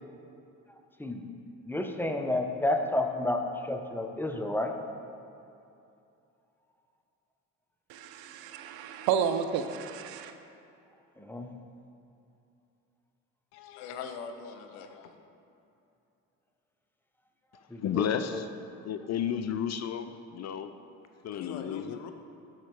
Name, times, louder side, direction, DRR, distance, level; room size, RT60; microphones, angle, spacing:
voice 1, 1.7-4.7 11.2-11.5 17.7-18.0 18.3-18.4, left 1 dB, 5° left, 4 dB, 0.9 m, -30 dB
voice 2, 7.9-10.3, right 7 dB, 65° right, 8 dB, 0.7 m, -31 dB
voice 3, 13.5-15.2 21.3-22.1, left 6 dB, 80° left, 7 dB, 0.8 m, -42 dB
voice 4, 17.8-18.5 18.8-20.7 21.2-22.0, left 9 dB, 45° left, 10 dB, 0.5 m, -32 dB
12.0 x 4.4 x 4.7 m, 2.7 s
hypercardioid pair, 60°, 40 cm